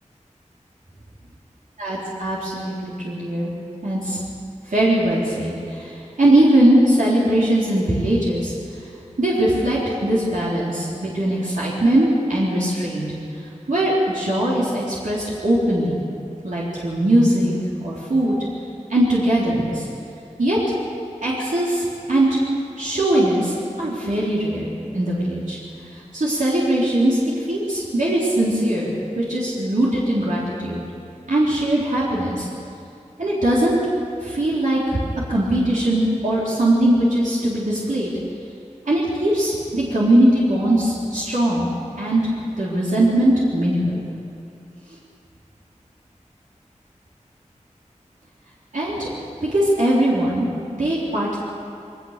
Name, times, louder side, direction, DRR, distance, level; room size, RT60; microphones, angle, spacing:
voice 1, 2.2-3.5 3.8-4.2 4.7-8.5 9.2-13.1 13.7-16.0 16.4-17.5 17.8-18.4 18.9-19.9 20.4-20.6 21.2-22.4 22.8-25.6 25.9-27.2 27.5-30.8 31.3-32.5 33.2-33.8 34.2-35.0 35.3-38.1 38.9-41.7 42.0-42.2 42.6-44.0 48.7-49.1 49.5-50.5 50.7-51.4, right 1 dB, 80° right, -7 dB, 3.9 m, -20 dB
21.0 x 19.0 x 6.8 m, 2.5 s
wide cardioid pair, 50°, 13 cm